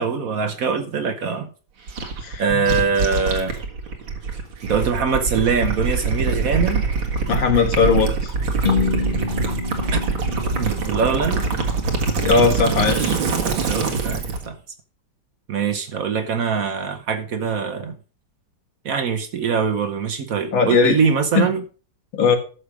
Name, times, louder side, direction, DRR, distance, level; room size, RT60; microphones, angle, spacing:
voice 1, 0.0-1.5 2.4-3.6 4.6-6.8 9.9-10.0 10.6-11.4 13.5-14.5 15.5-17.9 18.8-21.6, right 5 dB, 55° right, 1.1 m, -23 dB
Gurgling / Liquid, 1.9-14.5, right 4 dB, 90° right, 2.5 m, -24 dB
voice 2, 2.2-2.7 7.3-8.3 12.2-13.2 20.5-21.0 21.4-21.5 22.1-22.4, left 5 dB, 80° left, 2.4 m, -18 dB
sound 1, 8.6-12.5, left 5 dB, 30° left, 1.4 m, -28 dB
12.5 x 6.7 x 4.9 m
omnidirectional pair, 2.1 m